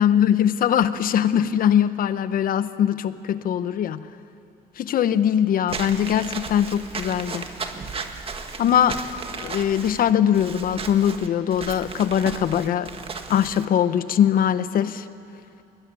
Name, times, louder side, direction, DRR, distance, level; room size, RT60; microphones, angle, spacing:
voice 1, 0.0-4.1 4.8-7.4 8.6-9.0 9.4-12.9 13.3-15.0, left 9 dB, 55° left, 13 dB, 1.0 m, -21 dB
Walk footsteps / Squeak, 5.7-13.7, right 4 dB, 35° right, 1.8 m, -35 dB
22.0 x 21.0 x 9.7 m, 2.6 s
cardioid pair, 110°, 17 cm